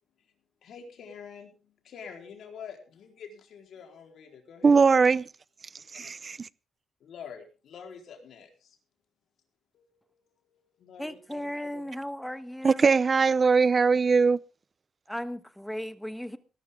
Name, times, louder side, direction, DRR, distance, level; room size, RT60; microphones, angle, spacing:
voice 1, 0.6-4.8 6.0-6.1 7.0-8.8 9.7-11.9, left 6 dB, 75° left, 4.3 m, -47 dB
voice 2, 4.6-5.2 5.9-6.5 12.6-14.4, right 5 dB, 40° right, 0.6 m, -21 dB
voice 3, 11.0-13.0 15.1-16.4, equal, 5° left, 1.4 m, -36 dB
19.0 x 12.5 x 3.8 m
cardioid pair, 70°, 0 cm